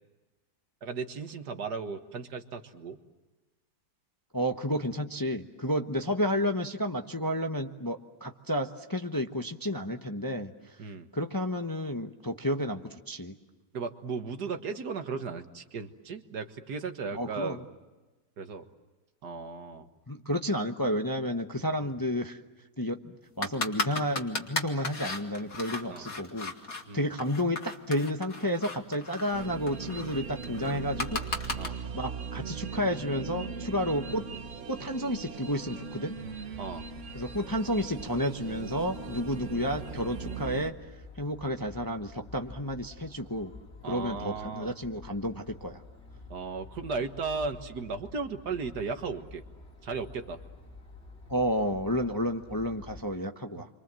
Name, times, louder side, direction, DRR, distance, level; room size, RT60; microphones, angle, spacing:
voice 1, 0.8-3.0 10.8-11.1 13.7-17.6 18.4-18.7 19.2-19.9 21.8-21.9 25.9-26.1 26.9-27.1 31.6-31.8 36.6-36.9 43.8-44.7 46.3-49.4 49.8-50.4, right 4 dB, 70° right, 7 dB, 2.1 m, -36 dB
voice 2, 4.3-10.5 11.1-13.3 17.1-17.6 20.1-22.4 22.8-26.5 26.9-31.5 31.9-34.2 34.7-36.1 37.1-40.8 41.2-43.5 43.9-45.8 51.3-53.7, equal, 15° left, 4 dB, 0.9 m, -31 dB
sound 1, 23.4-26.8 27.2-31.7, left 3 dB, 55° left, 2.6 m, -35 dB
sound 2, 29.3-40.7, right 5 dB, 50° right, 1.4 m, -39 dB
sound 3, 36.2-53.0, left 3 dB, 40° left, 3.2 m, -49 dB
30.0 x 25.0 x 7.6 m, 1.2 s
omnidirectional pair, 1.8 m